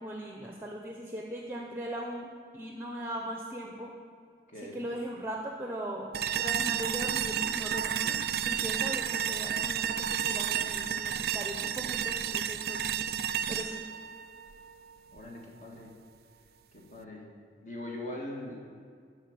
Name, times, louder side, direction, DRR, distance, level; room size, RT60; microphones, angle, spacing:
voice 1, 0.0-3.9 4.6-12.9 13.5-13.8, right 1 dB, 15° right, 0 dB, 0.7 m, -39 dB
voice 2, 4.5-4.8 15.1-16.0 16.7-17.3 17.6-18.6, left 1 dB, 45° left, -1 dB, 1.8 m, -41 dB
sound 1, 6.1-15.2, right 9 dB, 55° right, 0.3 m, -31 dB
13.0 x 4.8 x 8.7 m, 2.3 s
head